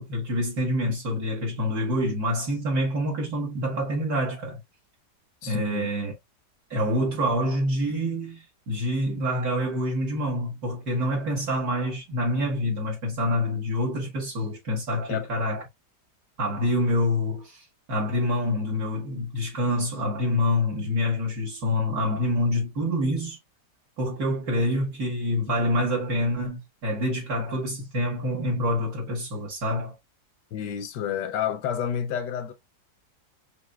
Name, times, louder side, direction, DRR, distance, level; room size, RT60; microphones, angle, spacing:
voice 1, 0.0-4.6 5.4-6.1 6.7-15.6 16.4-23.4 24.0-30.0, left 1 dB, 60° right, 1.8 m, -26 dB
voice 2, 5.4-5.9 15.1-15.3 30.5-32.5, left 9 dB, 80° left, 1.3 m, -29 dB
5.7 x 2.6 x 2.2 m
omnidirectional pair, 1.9 m